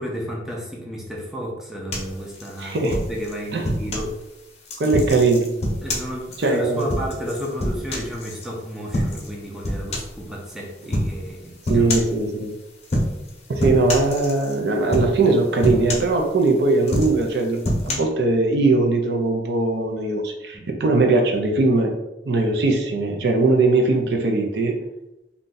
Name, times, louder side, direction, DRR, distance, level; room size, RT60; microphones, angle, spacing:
voice 1, 0.0-4.1 5.8-11.9 20.5-20.7, equal, ahead, -2 dB, 0.5 m, -32 dB
sound 1, 1.9-4.1 4.7-8.5 8.9-9.3 9.6-10.2 10.9-11.2 11.7-12.2 12.8-13.3 13.6-14.6 14.9-15.3 15.6-16.5 16.8-17.9, equal, 40° left, 0.7 m, -26 dB
voice 2, 2.6-2.9 3.5-3.8 4.8-5.5 6.4-6.8 11.7-12.5 13.5-17.6 17.8-24.7, right 3 dB, 65° right, 3 dB, 0.5 m, -20 dB
2.6 x 2.3 x 3.8 m, 0.93 s
head